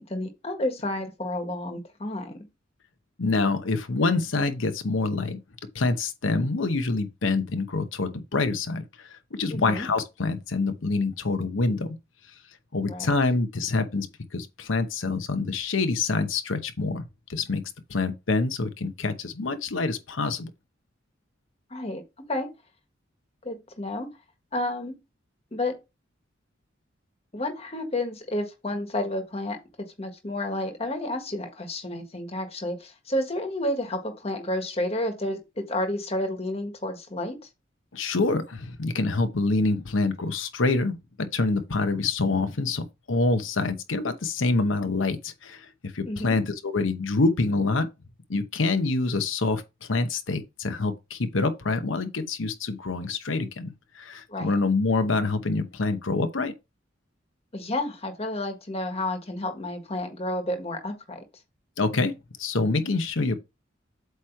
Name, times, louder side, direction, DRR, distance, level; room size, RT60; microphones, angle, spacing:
voice 1, 0.0-2.4 9.5-9.9 12.9-13.1 21.7-22.0 22.3-22.5 23.4-24.1 24.5-25.0 25.5-25.8 27.3-37.4 46.0-46.4 54.3-54.5 57.5-61.2, left 1 dB, 30° left, 1.5 m, -31 dB
voice 2, 3.2-5.4 5.7-12.0 12.7-17.0 17.3-20.5 37.9-47.9 48.3-56.5 61.8-62.1 62.4-63.4, left 3 dB, 90° left, 0.9 m, -26 dB
8.1 x 3.1 x 4.5 m
head